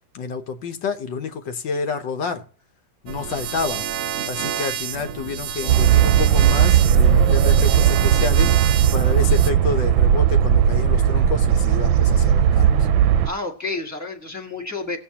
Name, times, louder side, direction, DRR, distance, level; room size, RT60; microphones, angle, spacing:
voice 1, 0.1-2.4 3.0-3.9 4.3-12.8, left 5 dB, 75° left, 1.6 m, -29 dB
sound 1, 3.1-9.5, right 9 dB, 75° right, 0.7 m, -29 dB
sound 2, 5.7-13.3, right 9 dB, 90° right, 1.4 m, -17 dB
voice 2, 13.2-15.0, left 3 dB, 10° right, 1.1 m, -30 dB
18.5 x 7.6 x 2.9 m
omnidirectional pair, 2.1 m